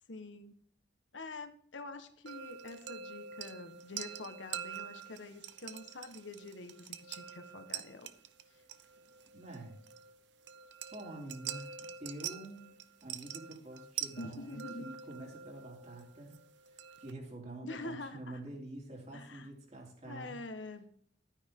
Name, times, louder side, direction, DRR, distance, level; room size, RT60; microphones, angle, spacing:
voice 1, 0.1-0.5 1.1-8.1 14.2-14.8 17.6-18.4 19.1-19.5 20.0-20.8, left 2 dB, 80° left, 7 dB, 1.4 m, -46 dB
sound 1, 2.3-17.1, right 9 dB, 65° right, 0.8 m, -46 dB
voice 2, 9.3-9.7 10.9-11.7 12.0-12.7 13.0-16.4 16.7-20.4, right 1 dB, 35° right, -1 dB, 3.6 m, -47 dB
12.5 x 9.7 x 3.8 m, 0.64 s
head